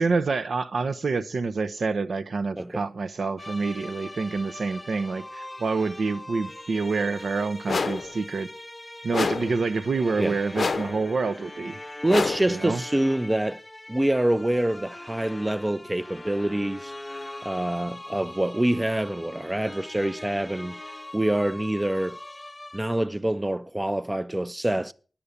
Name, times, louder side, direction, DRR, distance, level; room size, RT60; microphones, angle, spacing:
voice 1, 0.0-8.5 9.0-11.8 12.5-12.8, right 4 dB, 80° right, 0.6 m, -27 dB
sound 1, 3.4-22.8, left 1 dB, 20° left, 0.7 m, -41 dB
sound 2, 7.7-8.1 9.1-9.6 10.5-11.0 12.1-12.6, left 4 dB, 70° left, 0.6 m, -27 dB
voice 2, 12.0-13.6 13.9-16.9 17.4-20.8 21.1-22.2 22.7-24.9, right 1 dB, 15° right, 0.5 m, -26 dB
10.0 x 6.9 x 6.5 m
wide cardioid pair, 90°, 0 cm